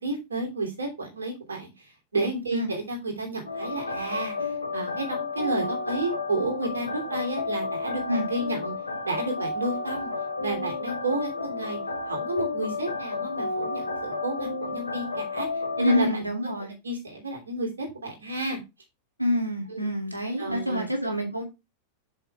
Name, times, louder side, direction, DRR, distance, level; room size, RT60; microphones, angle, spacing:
voice 1, 0.0-8.7 9.0-10.1 10.4-11.8 12.1-15.5 15.8-16.3 16.8-18.6 19.7-19.9 20.4-20.9, right 2 dB, 75° right, 2.9 m, -31 dB
sound 1, 3.5-16.0, left 3 dB, 80° left, 1.2 m, -32 dB
voice 2, 15.8-16.7 19.2-21.4, equal, 90° right, 2.3 m, -27 dB
6.8 x 5.9 x 3.3 m
figure-of-eight pair, 90°, 0 cm